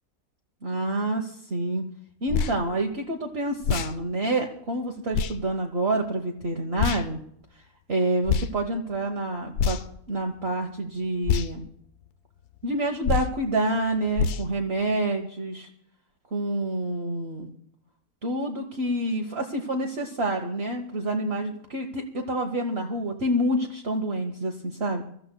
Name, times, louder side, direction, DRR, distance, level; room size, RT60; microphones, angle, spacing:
voice 1, 0.6-1.8 2.2-7.2 7.9-9.8 10.1-11.6 12.6-15.7 16.3-17.5 18.2-25.0, right 1 dB, 45° right, 2 dB, 1.3 m, -28 dB
sound 1, 2.3-2.6 3.6-3.9 5.1-5.3 6.8-7.0 8.3-8.5 9.5-10.0 11.3-11.5 13.0-13.4 14.2-14.5, left 6 dB, 85° left, 1.3 m, -25 dB
25.5 x 14.0 x 2.2 m, 0.70 s
omnidirectional pair, 1.6 m